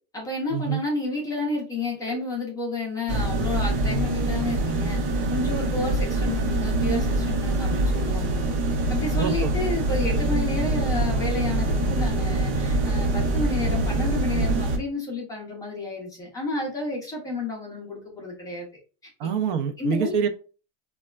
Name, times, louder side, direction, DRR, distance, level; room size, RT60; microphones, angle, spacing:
voice 1, 0.1-5.0 5.3-8.4 8.9-18.7 19.0-19.1 19.8-20.1, left 2 dB, 10° left, -2 dB, 0.4 m, -31 dB
sound 1, 3.1-14.8, right 2 dB, 85° right, 0.9 m, -24 dB
voice 2, 9.2-9.5 19.2-20.3, right 7 dB, 55° right, 8 dB, 0.5 m, -25 dB
4.0 x 2.2 x 2.2 m, 0.36 s
supercardioid pair, 165°, 33 cm